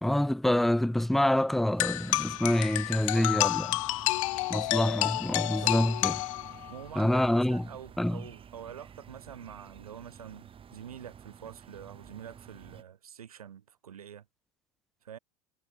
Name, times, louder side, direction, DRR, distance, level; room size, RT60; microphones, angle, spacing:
voice 1, 0.0-3.7 4.5-6.2 7.0-7.6 8.0-8.2, left 1 dB, ahead, 0.4 m, -26 dB
sound 1, 1.7-12.8, right 8 dB, 30° right, 5.2 m, -51 dB
sound 2, 1.8-6.8, left 19 dB, 60° left, 0.4 m, -30 dB
voice 2, 2.9-3.5 5.4-5.8 6.7-7.1 7.5-14.3 15.0-15.2, right 9 dB, 75° right, 1.8 m, -46 dB
figure-of-eight pair, 80°, 19 cm